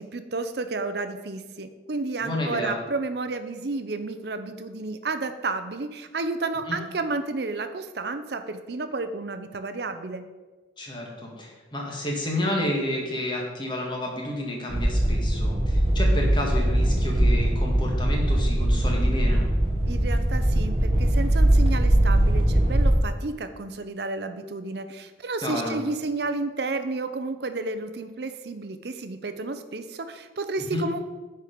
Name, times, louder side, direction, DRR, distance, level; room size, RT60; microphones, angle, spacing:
voice 1, 0.0-10.2 19.8-31.0, right 3 dB, 60° right, 9 dB, 0.6 m, -31 dB
voice 2, 2.2-2.8 6.7-6.8 10.8-19.5 25.4-25.8 30.7-30.9, left 1 dB, 25° left, -1 dB, 1.6 m, -30 dB
sound 1, 14.7-23.0, right 1 dB, 30° right, 1.1 m, -21 dB
9.4 x 4.6 x 5.1 m, 1.3 s
head